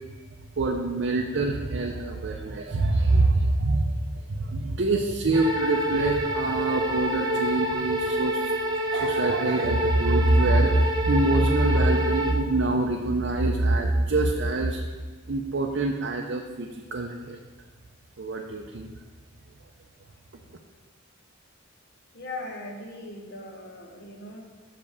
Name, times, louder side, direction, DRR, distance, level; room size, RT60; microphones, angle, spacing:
voice 1, 0.6-3.9 4.3-8.5 8.9-14.8 15.3-17.4 18.2-18.9, right 2 dB, 55° right, 1 dB, 0.5 m, -24 dB
sound 1, 5.3-12.3, right 1 dB, 20° right, 0.7 m, -27 dB
voice 2, 22.1-24.4, left 2 dB, 50° left, 1 dB, 1.2 m, -39 dB
5.9 x 5.4 x 6.6 m, 1.4 s
head